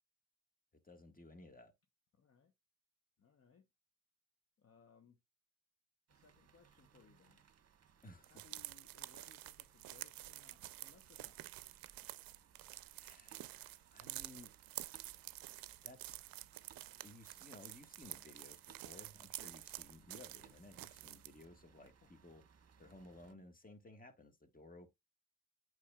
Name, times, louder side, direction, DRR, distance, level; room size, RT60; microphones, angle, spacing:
voice 1, 0.7-1.7 8.0-8.4 13.0-14.5 15.8-16.2 17.0-22.4 22.8-24.9, left 2 dB, 25° left, 1.6 m, -58 dB
voice 2, 2.1-2.5 3.2-3.7 4.6-5.2 6.1-7.4 8.3-11.4 22.0-22.1, left 5 dB, 40° left, 1.0 m, -67 dB
sound 1, 6.1-23.3, right 7 dB, 40° right, 1.1 m, -67 dB
sound 2, 8.2-21.4, right 15 dB, 65° right, 0.6 m, -50 dB
8.4 x 6.3 x 2.3 m
supercardioid pair, 60°, 37 cm